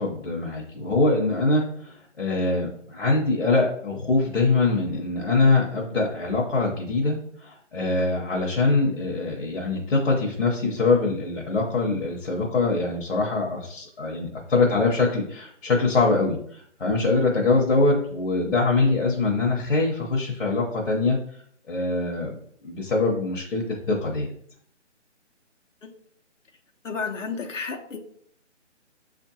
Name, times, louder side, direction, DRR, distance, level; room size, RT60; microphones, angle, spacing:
voice 1, 0.0-21.2 21.7-22.3 22.6-24.3, left 3 dB, 60° left, -3 dB, 1.0 m, -23 dB
voice 2, 26.8-28.0, left 5 dB, 85° left, 3 dB, 0.9 m, -31 dB
6.5 x 2.6 x 2.7 m, 0.65 s
hypercardioid pair, 170°, 37 cm